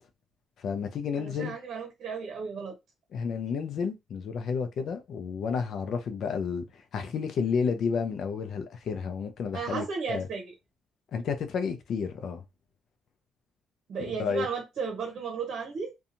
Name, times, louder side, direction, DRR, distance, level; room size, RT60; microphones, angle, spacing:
voice 1, 0.6-1.5 3.1-10.3 11.1-12.4 14.2-14.5, left 6 dB, 65° left, 0.5 m, -31 dB
voice 2, 1.2-2.8 9.5-10.5 13.9-15.9, right 5 dB, 65° right, 0.8 m, -34 dB
2.7 x 2.3 x 2.6 m
cardioid pair, 90°, 0 cm